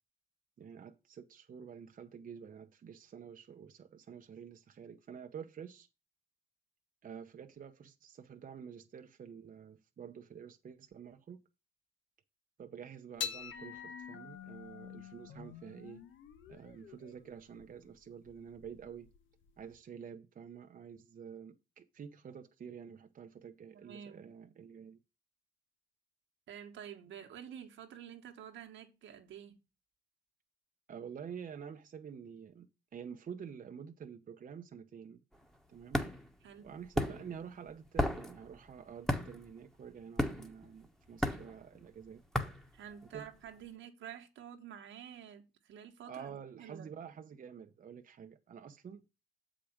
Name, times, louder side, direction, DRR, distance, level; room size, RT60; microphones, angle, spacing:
voice 1, 0.6-5.9 7.0-11.4 12.6-16.0 16.5-19.1 19.6-25.0 30.9-35.2 35.7-36.1 36.6-42.2 43.1-43.3 46.0-49.0, right 7 dB, 45° right, 0.8 m, -49 dB
sound 1, 13.2-19.7, left 8 dB, 75° left, 1.2 m, -46 dB
voice 2, 23.7-24.3 26.5-29.6 36.4-36.7 42.7-47.0, right 9 dB, 75° right, 1.4 m, -49 dB
sound 2, 35.3-43.5, equal, ahead, 1.3 m, -36 dB
7.5 x 5.1 x 5.9 m
cardioid pair, 90°, 20 cm